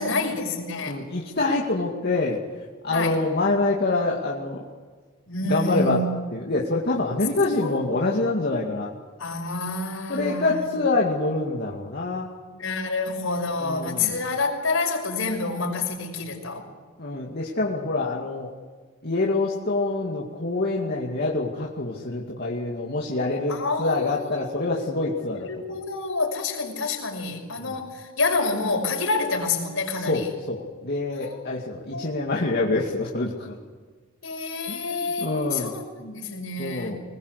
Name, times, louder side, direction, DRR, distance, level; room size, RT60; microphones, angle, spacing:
voice 1, 0.0-1.0 2.9-3.2 5.3-6.1 7.5-8.0 9.2-10.8 12.5-16.7 23.5-30.3 31.2-31.4 31.9-32.0 34.2-37.0, left 3 dB, 70° left, 2 dB, 5.9 m, -28 dB
voice 2, 0.8-2.4 2.8-4.6 5.4-6.0 6.3-8.9 10.1-12.3 13.6-14.2 17.0-18.5 19.0-25.5 27.6-27.8 30.1-33.5 34.7-34.8 35.2-35.7 36.6-37.0, left 2 dB, 50° left, -3 dB, 2.4 m, -26 dB
25.5 x 20.5 x 8.3 m, 1.5 s
head